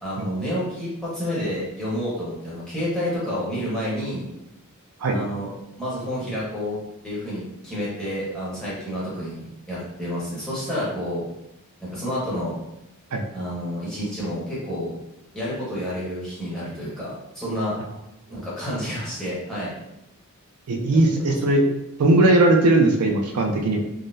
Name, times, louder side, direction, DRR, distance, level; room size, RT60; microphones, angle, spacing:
voice 1, 0.0-4.2 5.1-5.5 5.8-6.8 7.0-11.2 11.8-12.6 13.3-14.9 15.3-17.8 18.3-19.7 20.9-21.0, equal, 5° left, -9 dB, 1.1 m, -29 dB
voice 2, 20.7-21.6 22.0-23.8, right 2 dB, 85° right, 2 dB, 0.4 m, -18 dB
3.7 x 2.0 x 2.6 m, 0.86 s
head